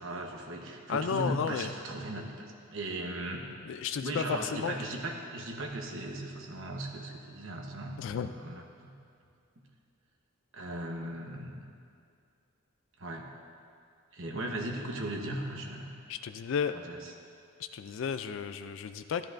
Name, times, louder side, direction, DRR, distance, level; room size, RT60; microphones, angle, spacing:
voice 1, 0.0-3.4 4.0-8.9 10.5-11.6 13.0-13.3 14.1-15.9 16.7-17.1, right 1 dB, 65° right, 1 dB, 1.1 m, -38 dB
voice 2, 0.9-1.7 3.7-4.8 8.0-8.3 16.1-16.7 17.6-19.3, left 6 dB, 65° left, 10 dB, 0.3 m, -33 dB
12.5 x 12.0 x 2.6 m, 2.3 s
head